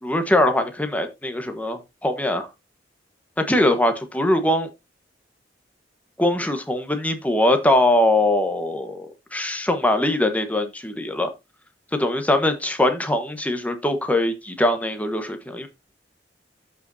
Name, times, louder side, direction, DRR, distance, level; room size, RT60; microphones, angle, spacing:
voice 1, 0.0-2.5 3.5-4.7 6.2-9.1 9.3-11.3 12.0-15.7, left 1 dB, 10° left, 1.2 m, -22 dB
13.5 x 5.2 x 2.7 m
head